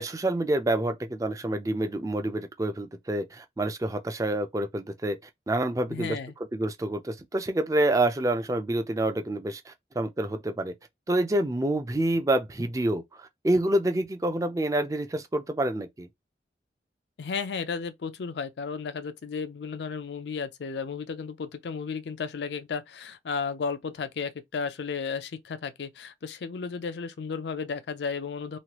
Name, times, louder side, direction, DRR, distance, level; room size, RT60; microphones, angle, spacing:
voice 1, 0.0-5.2 5.5-6.2 6.5-10.7 11.1-16.1, right 1 dB, 20° right, 0.4 m, -27 dB
voice 2, 5.9-6.3 17.2-28.6, left 5 dB, 80° left, 0.4 m, -34 dB
3.0 x 2.3 x 2.9 m
head